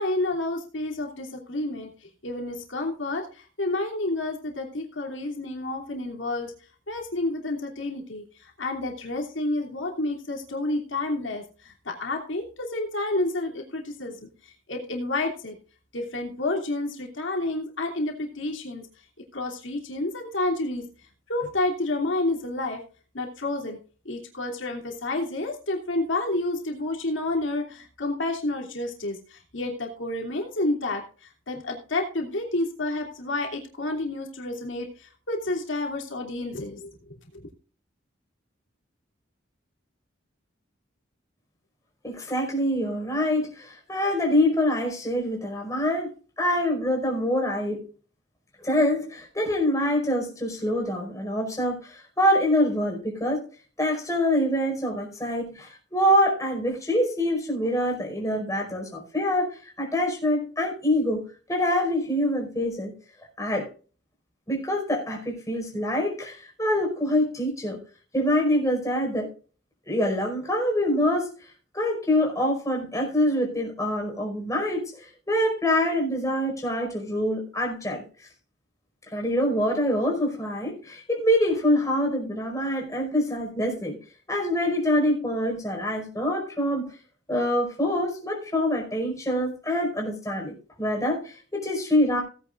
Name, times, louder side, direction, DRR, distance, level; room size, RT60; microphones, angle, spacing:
voice 1, 0.0-1.9 2.2-6.5 6.9-15.5 15.9-18.9 19.3-20.8 21.3-22.8 23.1-23.8 24.0-36.9 37.3-37.5, left 2 dB, 90° left, 1 dB, 3.0 m, -30 dB
voice 2, 42.0-46.1 46.4-47.8 48.6-53.4 53.8-59.5 59.8-61.2 61.5-62.9 63.4-63.7 64.5-67.8 68.1-69.3 69.9-71.3 71.7-78.0 79.1-84.0 84.3-86.9 87.3-92.2, left 1 dB, 15° left, 0 dB, 5.3 m, -25 dB
17.5 x 9.9 x 2.5 m, 0.38 s
head